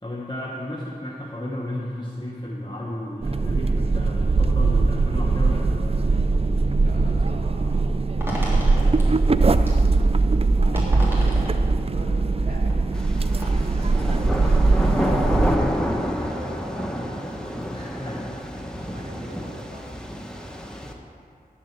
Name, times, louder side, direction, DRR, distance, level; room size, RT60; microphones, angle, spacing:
voice 1, 0.0-6.2 11.2-11.4 17.7-18.3, left 1 dB, 30° left, -4 dB, 1.2 m, -33 dB
sound 1, 3.2-15.6, right 3 dB, 40° right, 0.4 m, -21 dB
voice 2, 6.8-7.9 8.5-11.5 11.8-13.1 13.5-17.9 18.7-20.5, equal, 70° right, -4 dB, 2.4 m, -42 dB
sound 2, 8.2-13.5, equal, 15° right, 3.2 m, -35 dB
sound 3, 12.9-20.9, equal, 5° left, 1.1 m, -28 dB
10.0 x 7.4 x 6.7 m, 2.4 s
wide cardioid pair, 50°, 16 cm